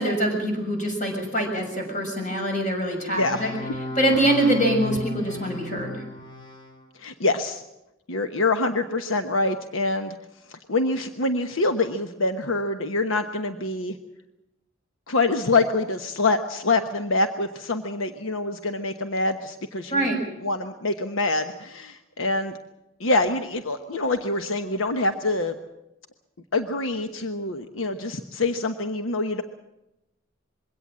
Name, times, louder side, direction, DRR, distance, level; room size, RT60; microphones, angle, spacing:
voice 1, 0.0-3.5 3.9-6.0 19.9-20.2, right 1 dB, 40° left, 2 dB, 6.6 m, -24 dB
sound 1, 3.1-6.8, left 3 dB, 25° left, 2.6 m, -35 dB
voice 2, 7.0-7.6 8.1-10.2 10.5-14.0 15.1-20.1 20.4-22.6 23.0-25.5 26.5-29.4, left 2 dB, 80° left, 7 dB, 1.1 m, -25 dB
22.5 x 17.0 x 7.5 m, 0.91 s
head